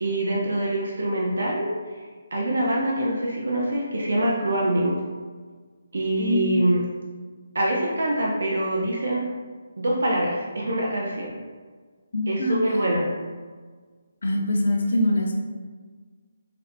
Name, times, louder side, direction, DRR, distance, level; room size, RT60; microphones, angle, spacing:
voice 1, 0.0-2.0 2.3-5.0 5.9-6.8 7.5-9.2 9.8-11.3 12.3-13.1, right 1 dB, 80° right, -3 dB, 0.5 m, -24 dB
voice 2, 6.2-6.6 12.1-12.6 14.2-15.3, left 1 dB, 55° left, 1 dB, 0.5 m, -23 dB
4.2 x 2.1 x 2.6 m, 1.5 s
hypercardioid pair, 180°, 0 cm